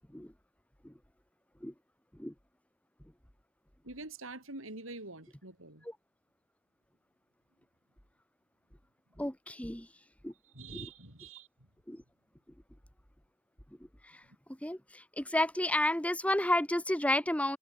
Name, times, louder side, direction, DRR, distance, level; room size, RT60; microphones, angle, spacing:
voice 1, 3.8-5.8 10.5-11.5, right 3 dB, 70° right, 6.4 m, -45 dB
voice 2, 9.2-9.9 10.2-10.3 10.7-10.9 11.9-12.0 14.0-17.6, left 1 dB, 5° left, 1.7 m, -32 dB
head